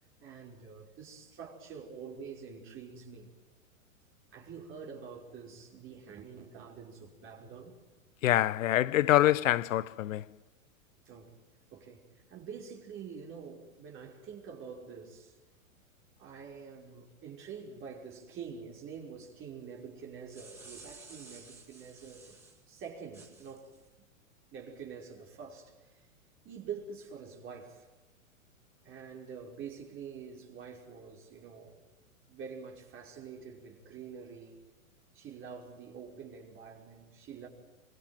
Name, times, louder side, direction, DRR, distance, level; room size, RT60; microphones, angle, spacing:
voice 1, 0.2-3.4 4.3-7.8 11.0-11.4 11.7-15.4 16.2-22.4 22.7-23.7 24.5-26.1 26.4-27.9 28.8-31.8 32.3-34.7 35.1-37.5, right 6 dB, 30° right, 5.6 m, -46 dB
voice 2, 8.2-10.2, left 14 dB, 65° left, 1.1 m, -25 dB
sound 1, 20.0-22.6 23.1-23.8, right 3 dB, 5° right, 5.9 m, -53 dB
26.0 x 25.0 x 9.3 m
hypercardioid pair, 125°, 41 cm